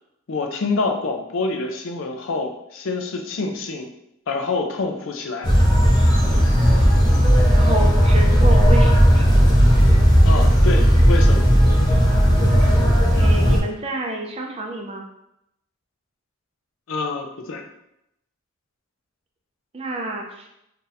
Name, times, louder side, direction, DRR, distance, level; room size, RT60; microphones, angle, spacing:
voice 1, 0.3-3.9 4.3-5.5 10.2-11.5 11.8-12.1 16.9-17.6, left 3 dB, 70° left, 4 dB, 0.5 m, -27 dB
sound 1, 5.4-13.6, equal, 20° left, 0.7 m, -15 dB
voice 2, 7.5-9.3 13.1-15.1 19.7-20.5, right 2 dB, 25° right, 1 dB, 0.4 m, -29 dB
2.7 x 2.5 x 3.9 m, 0.81 s
head